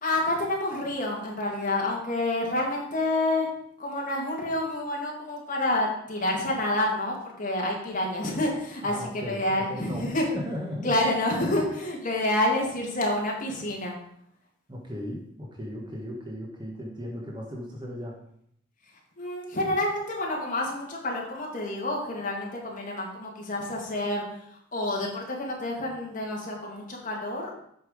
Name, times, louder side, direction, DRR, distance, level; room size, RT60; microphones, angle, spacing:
voice 1, 0.0-3.5 3.8-10.2 10.8-14.0 19.2-24.2 24.7-27.5, left 1 dB, 45° left, -2 dB, 2.3 m, -28 dB
voice 2, 8.8-10.9 14.7-18.2, equal, 25° right, -2 dB, 1.3 m, -36 dB
8.4 x 5.8 x 5.1 m, 0.70 s
head